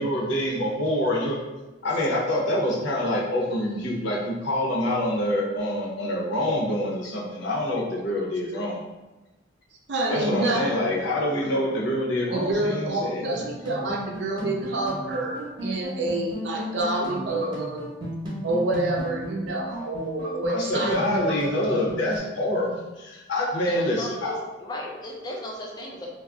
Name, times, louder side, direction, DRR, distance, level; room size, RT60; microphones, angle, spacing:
voice 1, 0.0-1.4 1.8-8.8 10.1-13.4 20.5-24.4, left 1 dB, 75° left, -4 dB, 0.7 m, -26 dB
voice 2, 9.9-10.8 12.3-17.8 18.4-21.5, right 2 dB, 65° right, 0 dB, 0.5 m, -28 dB
sound 1, 13.2-22.2, equal, 25° right, 0.7 m, -35 dB
voice 3, 23.6-24.3 24.6-26.1, left 1 dB, 20° left, -2 dB, 0.4 m, -36 dB
2.3 x 2.0 x 3.5 m, 1.1 s
head